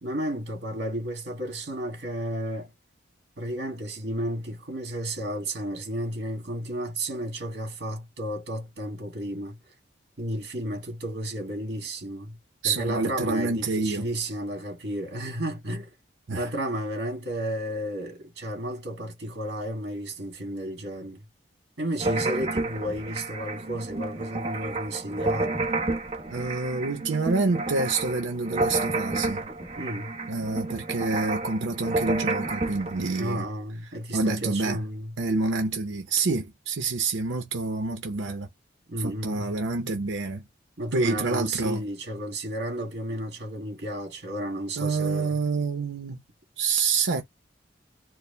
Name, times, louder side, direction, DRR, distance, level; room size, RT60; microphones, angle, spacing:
voice 1, 0.0-2.7 3.4-9.6 10.2-12.4 12.6-15.9 16.3-21.2 21.8-25.7 29.8-30.1 33.2-35.1 38.9-39.5 40.8-45.4, right 1 dB, 60° right, 1.8 m, -32 dB
voice 2, 12.6-14.0 16.3-16.5 26.3-29.5 30.3-33.5 34.1-34.9 35.2-38.5 39.0-40.5 40.9-41.9 44.8-46.2 46.6-47.2, right 3 dB, 90° right, 0.7 m, -27 dB
sound 1, 22.0-33.2, right 2 dB, 35° right, 0.9 m, -30 dB
4.6 x 2.1 x 3.2 m
head